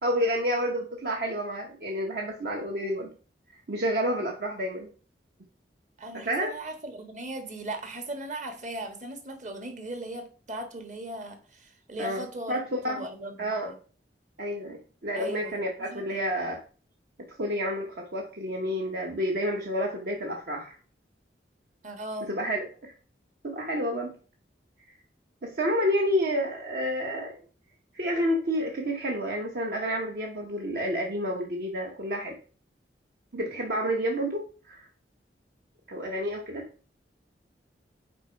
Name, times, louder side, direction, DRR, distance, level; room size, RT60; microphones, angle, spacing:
voice 1, 0.0-3.1 3.7-4.9 6.2-6.5 12.0-13.0 13.4-13.7 14.4-16.6 17.4-20.8 22.2-22.9 23.4-24.1 25.4-27.3 27.9-32.4 33.3-34.9 35.9-36.6, equal, 60° right, 1 dB, 1.1 m, -29 dB
voice 2, 6.0-12.6 12.8-13.8 15.1-16.0 21.8-22.3, right 1 dB, 45° right, 5 dB, 1.6 m, -38 dB
8.1 x 4.8 x 4.5 m, 0.40 s
head